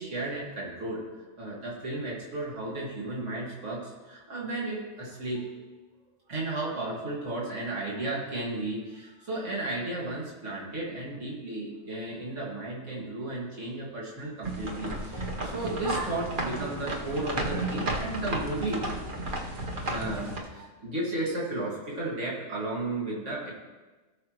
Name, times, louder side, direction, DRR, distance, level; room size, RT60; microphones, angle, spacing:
voice 1, 0.0-5.6 6.3-18.8 19.8-23.5, right 2 dB, 70° right, -4 dB, 2.4 m, -34 dB
sound 1, 14.4-20.4, right 2 dB, 45° right, 1.3 m, -33 dB
17.5 x 6.5 x 3.1 m, 1.2 s
omnidirectional pair, 1.3 m